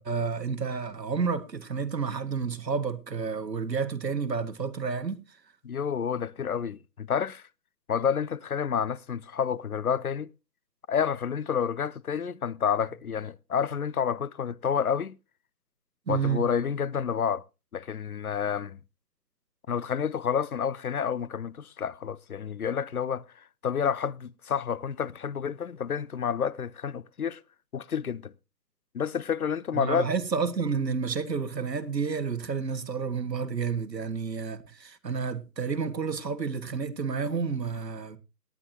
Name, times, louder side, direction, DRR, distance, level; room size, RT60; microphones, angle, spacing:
voice 1, 0.0-5.2 16.1-16.4 29.7-38.2, right 5 dB, 80° right, 1.6 m, -30 dB
voice 2, 5.6-7.4 7.9-10.3 10.9-15.2 16.1-17.4 17.7-18.8 19.7-27.4 27.7-28.3 28.9-30.1, left 7 dB, 60° left, 0.6 m, -29 dB
18.5 x 9.8 x 2.7 m
hypercardioid pair, 180°, 49 cm